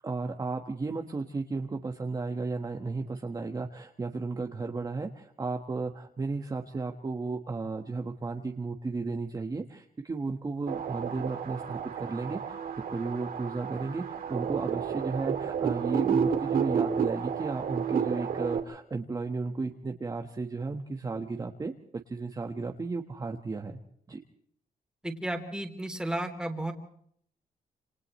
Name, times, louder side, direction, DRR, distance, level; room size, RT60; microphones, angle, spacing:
voice 1, 0.0-12.6 12.9-21.7 22.1-23.8 24.1-24.2, right 3 dB, 25° right, 3 dB, 1.5 m, -34 dB
sound 1, 10.7-18.6, right 7 dB, 70° right, 2.9 m, -31 dB
voice 2, 25.0-26.7, right 1 dB, 5° right, 5 dB, 3.3 m, -33 dB
29.0 x 28.0 x 3.2 m, 0.66 s
wide cardioid pair, 150°, 16 cm